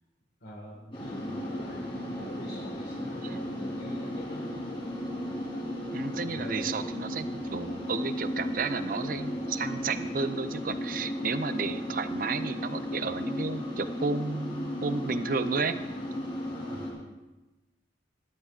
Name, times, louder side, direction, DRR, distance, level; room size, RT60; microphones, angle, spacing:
voice 1, 0.4-4.7 6.2-6.8 16.5-17.1, left 1 dB, 70° left, -2 dB, 1.7 m, -44 dB
sound 1, 0.9-16.9, equal, 30° left, 3.7 m, -35 dB
voice 2, 5.9-15.7, right 4 dB, 45° right, 11 dB, 0.6 m, -32 dB
19.5 x 12.5 x 2.5 m, 1.1 s
head